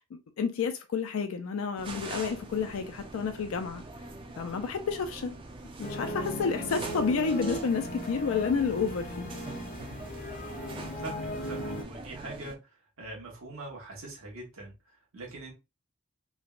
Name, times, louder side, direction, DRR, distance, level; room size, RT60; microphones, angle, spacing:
voice 1, 0.1-3.8 4.4-5.4 5.8-9.3, left 5 dB, 85° left, 0.4 m, -30 dB
sound 1, 1.8-12.5, right 2 dB, 25° right, 0.4 m, -44 dB
sound 2, 5.8-11.8, equal, 40° left, 0.6 m, -37 dB
voice 2, 11.0-15.5, right 2 dB, 80° right, 1.0 m, -43 dB
3.3 x 2.1 x 2.3 m
head